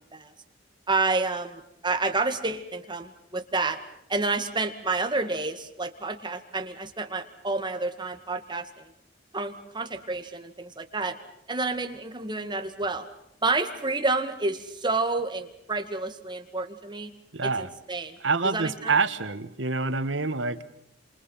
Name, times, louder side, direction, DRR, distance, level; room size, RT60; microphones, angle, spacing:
voice 1, 0.9-3.8 4.1-8.8 9.3-11.2 11.5-13.1 13.4-17.1 17.6-18.2 18.4-18.9, right 3 dB, 25° right, 7 dB, 2.2 m, -29 dB
voice 2, 17.3-17.7 18.2-20.6, right 4 dB, 85° right, 12 dB, 1.6 m, -26 dB
29.0 x 27.5 x 5.8 m, 0.74 s
head